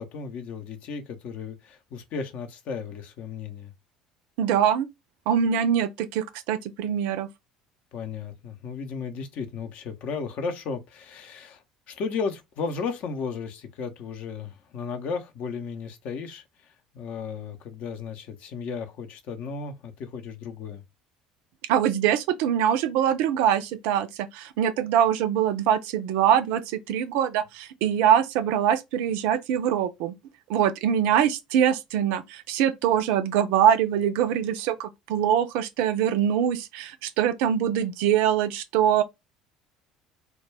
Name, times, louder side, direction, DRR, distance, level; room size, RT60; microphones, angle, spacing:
voice 1, 0.0-3.7 7.9-20.8, left 5 dB, 55° left, 0.6 m, -34 dB
voice 2, 4.4-4.9 5.3-7.3 21.7-30.1 30.5-39.0, right 9 dB, 60° right, 0.3 m, -23 dB
2.2 x 2.2 x 3.2 m
figure-of-eight pair, 60°, 3 cm